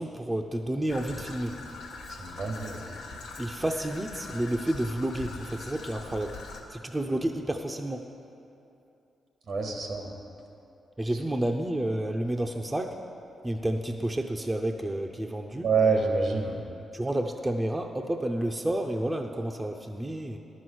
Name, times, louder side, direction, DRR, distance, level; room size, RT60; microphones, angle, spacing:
voice 1, 0.0-1.6 3.4-6.4 6.7-8.1 11.0-13.0 13.4-15.7 16.9-20.4, right 1 dB, 20° right, 3 dB, 0.7 m, -30 dB
Traffic noise roadway noise / Trickle dribble, 0.9-6.6, left 3 dB, 85° left, 1.1 m, -42 dB
voice 2, 2.2-2.9 9.5-10.1 15.6-16.6, right 4 dB, 75° right, 2 dB, 1.7 m, -27 dB
11.0 x 6.3 x 7.8 m, 2.7 s
supercardioid pair, 45°, 0 cm